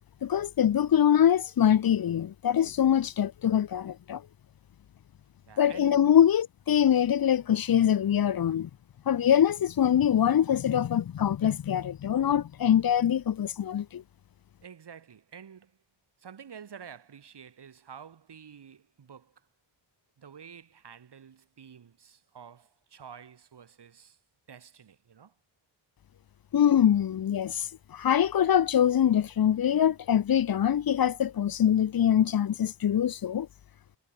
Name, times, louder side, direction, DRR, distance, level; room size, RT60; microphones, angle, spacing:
voice 1, 0.2-4.2 5.6-8.7 9.1-14.0 26.5-33.5, left 9 dB, 45° left, 0.8 m, -24 dB
voice 2, 5.5-6.1 14.6-15.8 16.2-19.5 20.2-24.2 24.5-25.3, right 7 dB, 55° right, 5.2 m, -49 dB
wide cardioid pair, 150°, 48 cm